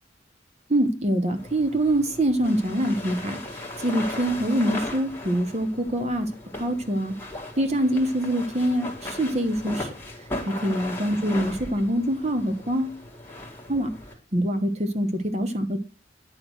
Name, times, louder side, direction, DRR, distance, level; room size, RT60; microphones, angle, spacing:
voice 1, 0.7-6.3 6.6-7.1 7.6-9.9 10.6-13.0 13.7-13.9 14.3-15.8, right 1 dB, 35° right, 7 dB, 1.3 m, -24 dB
sound 1, 1.4-14.1, left 1 dB, 10° left, 1.8 m, -37 dB
10.0 x 3.6 x 6.3 m, 0.34 s
head